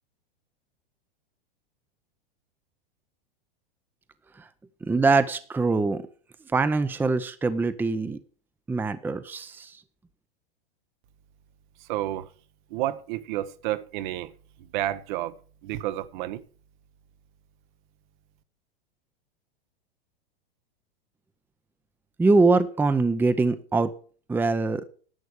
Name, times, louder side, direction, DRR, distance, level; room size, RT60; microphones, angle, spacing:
voice 1, 4.8-6.1 6.5-8.2 8.7-9.8 22.2-23.9 24.3-24.9, right 3 dB, 5° right, 0.7 m, -23 dB
voice 2, 11.8-12.3 12.7-14.3 14.6-16.4, right 14 dB, 55° right, 1.0 m, -31 dB
11.0 x 7.0 x 6.4 m
hypercardioid pair, 115°, 29 cm